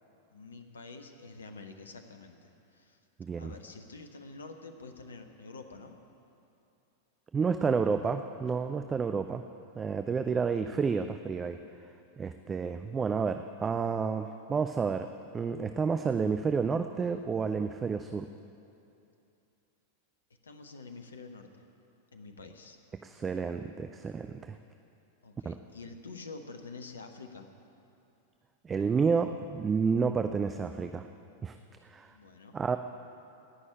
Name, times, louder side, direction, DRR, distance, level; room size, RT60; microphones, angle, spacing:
voice 1, 0.3-3.0 3.3-6.0 10.5-10.7 20.4-21.6 22.1-22.8 25.2-27.5 32.1-32.6, left 3 dB, 70° left, 6 dB, 1.1 m, -47 dB
voice 2, 3.2-3.5 7.3-9.4 9.8-11.6 12.2-15.1 15.3-18.3 23.0-24.6 25.5-25.6 28.6-31.1 31.4-31.6 31.8-32.1 32.5-32.8, right 5 dB, 20° right, 8 dB, 0.5 m, -30 dB
18.0 x 6.3 x 8.8 m, 2.7 s
figure-of-eight pair, 90°, 0 cm